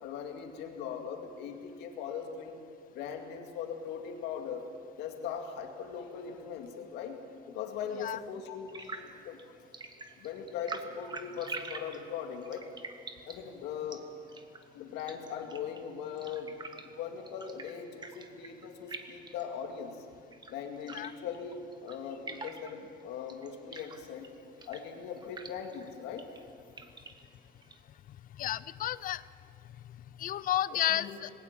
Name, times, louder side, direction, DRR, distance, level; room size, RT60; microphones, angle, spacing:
voice 1, 0.0-2.6 2.9-4.6 5.0-7.2 7.5-9.4 10.2-12.7 13.3-14.1 14.7-20.1 20.5-24.3 24.7-26.3 30.7-31.2, left 7 dB, 90° left, 4 dB, 2.3 m, -40 dB
sound 1, 8.7-27.8, right 3 dB, 25° right, 1.5 m, -48 dB
voice 2, 28.4-29.2 30.2-31.3, left 12 dB, 55° left, 19 dB, 0.5 m, -31 dB
20.0 x 18.0 x 7.3 m, 2.5 s
cardioid pair, 110°, 17 cm